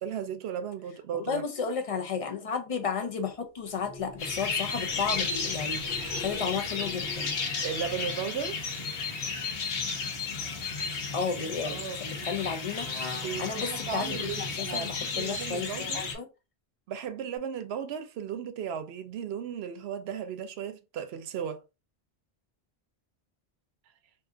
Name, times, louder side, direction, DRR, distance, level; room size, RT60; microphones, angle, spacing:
voice 1, 0.0-1.4 7.6-8.6 11.6-12.3 13.1-16.1 16.9-21.6, right 8 dB, 80° right, 0.8 m, -36 dB
voice 2, 1.1-7.3 11.1-13.0 13.4-16.3, left 5 dB, 45° left, 0.5 m, -33 dB
sound 1, 3.6-9.4 9.7-10.3 17.4-17.5, left 2 dB, 90° left, 1.2 m, -47 dB
sound 2, 4.2-16.1, left 5 dB, 70° left, 0.9 m, -33 dB
2.6 x 2.4 x 3.6 m
omnidirectional pair, 1.1 m